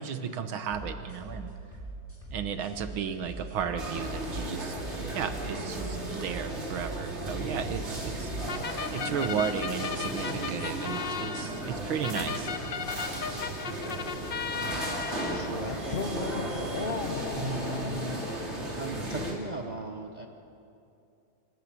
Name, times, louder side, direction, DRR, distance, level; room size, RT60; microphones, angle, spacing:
voice 1, 0.0-1.5 2.3-4.8 5.1-8.3 8.9-12.5, right 7 dB, 90° right, 9 dB, 2.0 m, -34 dB
sound 1, 0.7-8.7, right 2 dB, 5° left, 5.3 m, -41 dB
sound 2, 3.8-19.3, right 1 dB, 30° right, 3.2 m, -35 dB
sound 3, 8.5-18.8, left 6 dB, 70° left, 0.5 m, -36 dB
voice 2, 15.3-16.4 17.3-18.2 18.8-20.3, right 2 dB, 65° right, 4 dB, 0.4 m, -37 dB
26.0 x 12.5 x 8.8 m, 2.7 s
omnidirectional pair, 2.2 m